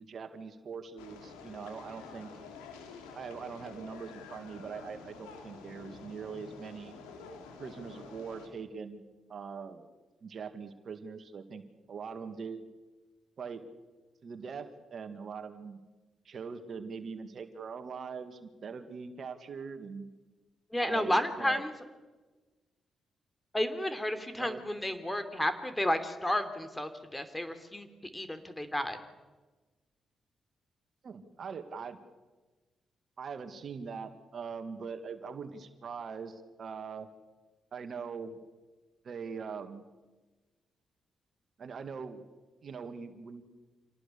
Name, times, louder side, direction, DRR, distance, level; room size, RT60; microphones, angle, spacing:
voice 1, 0.0-2.3 3.1-7.0 7.6-9.0 9.3-9.9 10.2-11.6 11.9-12.7 13.4-13.6 14.2-15.8 16.3-20.1 20.8-21.6 24.4-24.6 31.0-32.0 33.2-37.1 37.7-38.4 39.0-39.9 41.6-42.2 42.6-43.4, right 5 dB, 60° right, 8 dB, 1.9 m, -42 dB
sound 1, 1.0-8.5, left 4 dB, 85° left, 2.8 m, -49 dB
voice 2, 20.7-21.7 23.5-27.9 28.1-29.0, left 1 dB, 15° left, 10 dB, 3.1 m, -32 dB
26.5 x 18.5 x 7.0 m, 1.3 s
hypercardioid pair, 40°, 0 cm